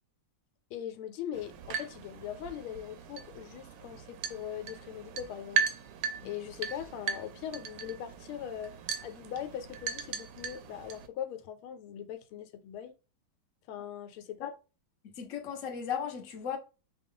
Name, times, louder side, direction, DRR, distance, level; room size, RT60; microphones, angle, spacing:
voice 1, 0.7-5.6 6.2-8.7 9.0-13.0 13.7-14.5, left 10 dB, 85° left, 1.5 m, -40 dB
sound 1, 1.3-11.1, right 7 dB, 80° right, 1.4 m, -38 dB
voice 2, 15.0-16.6, left 8 dB, 50° left, 1.0 m, -36 dB
5.4 x 2.3 x 3.7 m
omnidirectional pair, 2.3 m